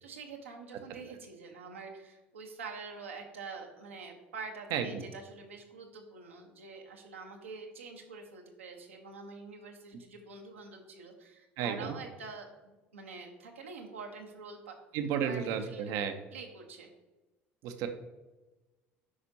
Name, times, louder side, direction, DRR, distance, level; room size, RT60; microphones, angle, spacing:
voice 1, 0.0-14.7 15.2-15.9 16.3-16.9, right 4 dB, 85° right, 1 dB, 1.0 m, -46 dB
voice 2, 4.7-5.0 11.6-11.9 14.9-16.1 17.6-17.9, right 8 dB, 60° right, 8 dB, 0.7 m, -32 dB
9.7 x 5.1 x 2.8 m, 1.1 s
figure-of-eight pair, 65°, 7 cm